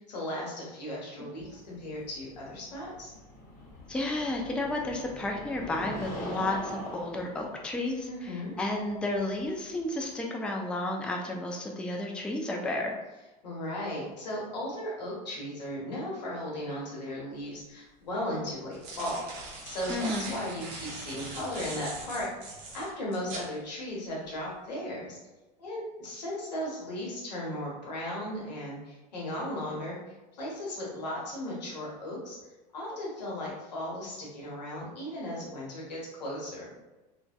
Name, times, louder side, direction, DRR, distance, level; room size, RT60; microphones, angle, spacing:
voice 1, 0.0-3.1 8.1-8.6 13.4-19.2 19.6-25.2 25.6-30.0 30.4-32.4 32.7-36.7, left 1 dB, 85° left, -4 dB, 0.9 m, -36 dB
sound 1, 1.4-10.2, left 1 dB, 50° left, 0.8 m, -43 dB
voice 2, 3.9-12.9 19.9-20.3, left 2 dB, 5° left, 1 dB, 0.3 m, -32 dB
sound 2, 17.4-17.5 18.5-23.5, right 3 dB, 60° right, 0.7 m, -41 dB
2.5 x 2.1 x 2.3 m, 1.1 s
hypercardioid pair, 85°, 21 cm